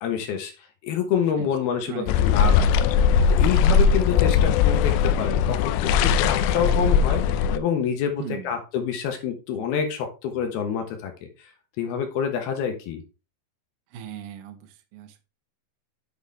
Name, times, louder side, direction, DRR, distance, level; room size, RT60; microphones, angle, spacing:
voice 1, 0.0-0.5 0.8-2.9 3.3-11.3 11.8-13.0, left 7 dB, 65° left, 5 dB, 2.8 m, -27 dB
voice 2, 1.9-2.2 8.2-8.5 13.9-15.2, right 11 dB, 80° right, 7 dB, 1.9 m, -38 dB
sound 1, 2.1-7.6, left 7 dB, 85° left, 2.6 m, -19 dB
8.1 x 6.2 x 3.6 m, 0.30 s
omnidirectional pair, 5.3 m